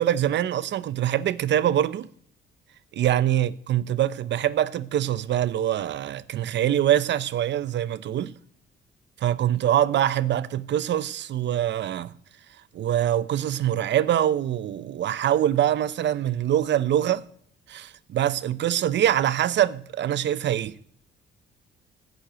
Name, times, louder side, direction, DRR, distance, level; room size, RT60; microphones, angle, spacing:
voice 1, 0.0-2.1 2.9-8.3 9.2-12.1 12.7-17.2 17.7-20.8, right 11 dB, 65° right, 0.8 m, -24 dB
16.0 x 6.6 x 9.0 m
cardioid pair, 90°, 20 cm